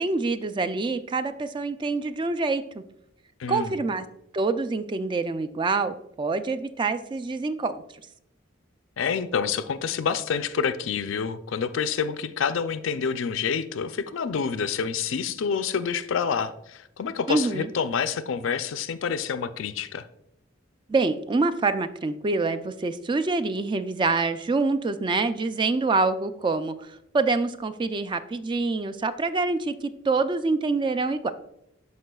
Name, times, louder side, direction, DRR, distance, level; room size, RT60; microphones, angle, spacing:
voice 1, 0.0-2.8 3.5-4.0 4.3-7.8 17.3-17.7 20.9-26.7 27.1-31.3, right 3 dB, 25° right, 11 dB, 0.3 m, -26 dB
voice 2, 3.4-3.8 9.0-20.1, left 6 dB, 70° left, 13 dB, 0.4 m, -28 dB
12.5 x 4.7 x 2.3 m, 0.78 s
head